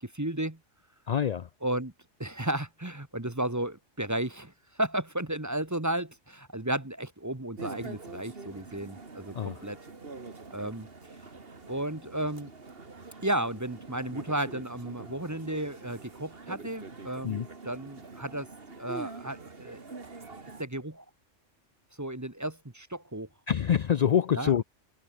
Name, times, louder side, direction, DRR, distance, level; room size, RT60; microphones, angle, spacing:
voice 1, 0.0-0.6 1.6-1.9 2.2-9.8 10.5-11.2 11.7-12.5 13.2-18.5 18.8-19.8 20.1-20.2 20.6-21.0 22.0-23.3 24.3-24.6, right 1 dB, 15° right, 1.6 m, -33 dB
voice 2, 1.1-1.5 9.3-9.6 17.2-17.5 23.5-24.6, left 9 dB, 65° left, 0.4 m, -26 dB
sound 1, 7.6-20.6, right 4 dB, 50° right, 2.3 m, -45 dB
omnidirectional pair, 1.3 m